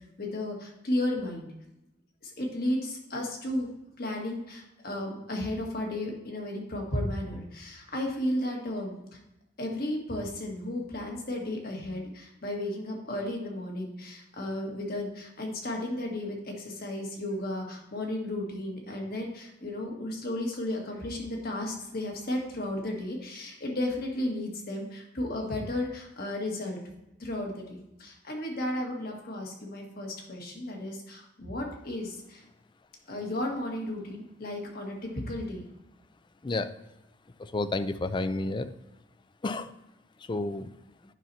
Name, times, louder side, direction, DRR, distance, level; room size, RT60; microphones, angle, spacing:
voice 1, 0.2-1.5 2.2-3.7 4.0-9.2 9.6-26.8 27.2-32.4 33.1-35.6, left 1 dB, 55° left, 1 dB, 1.6 m, -34 dB
voice 2, 37.4-38.7 39.4-39.7 40.2-40.7, left 2 dB, 25° left, 12 dB, 0.4 m, -31 dB
10.0 x 5.7 x 2.7 m, 0.91 s
head